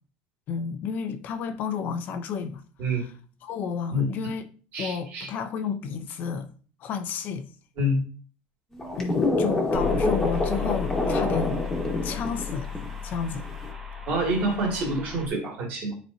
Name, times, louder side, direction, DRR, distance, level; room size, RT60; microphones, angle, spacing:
voice 1, 0.5-2.6 2.9-3.1 3.4-4.5 4.8-6.5 6.8-7.5 9.0-11.6 12.0-12.7 13.0-13.5 14.3-14.4, left 6 dB, 45° left, 0.6 m, -32 dB
voice 2, 4.7-5.3 7.8-8.0 14.1-15.9, right 1 dB, 50° right, 2.4 m, -27 dB
sound 1, 8.7-12.9 13.4-13.7, left 2 dB, 10° left, 1.4 m, -26 dB
sound 2, 9.7-15.3, left 7 dB, 10° right, 1.1 m, -34 dB
10.0 x 4.3 x 2.7 m
cardioid pair, 150°, 4 cm